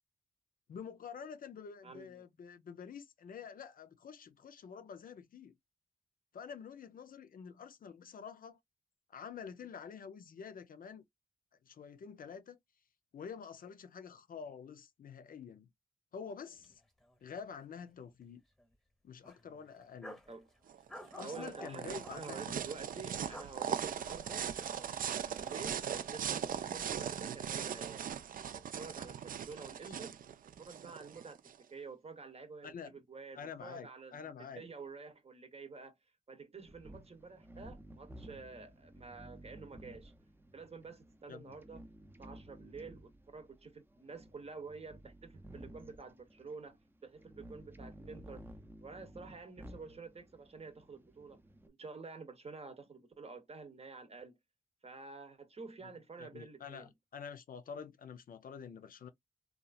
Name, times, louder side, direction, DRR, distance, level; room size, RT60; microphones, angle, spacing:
voice 1, 0.7-5.6 6.3-8.6 9.1-11.0 11.6-12.6 13.1-15.7 16.1-16.8 17.2-18.4 19.0-20.2 21.1-22.6 29.8-30.0 32.6-33.0 33.4-34.6 41.3-41.6 55.8-55.9 56.2-59.1, left 6 dB, 65° left, 0.5 m, -48 dB
voice 2, 1.8-2.2 20.3-20.5 21.2-28.1 28.5-30.2 30.7-31.4 31.7-36.0 36.3-40.1 40.5-41.8 42.2-48.4 48.8-51.4 51.7-54.4 54.8-56.9, right 4 dB, 45° right, 0.8 m, -49 dB
sound 1, 16.6-16.7 17.0-17.1 17.6-18.2 18.6-18.7 19.2-20.3 20.9-22.2 23.1-23.5 23.9-25.9 26.2-27.0, left 1 dB, 5° left, 1.0 m, -52 dB
sound 2, 20.7-31.5, right 8 dB, 65° right, 0.4 m, -39 dB
sound 3, 36.7-51.7, right 1 dB, 15° right, 0.5 m, -54 dB
2.9 x 2.4 x 2.3 m
cardioid pair, 65°, 15 cm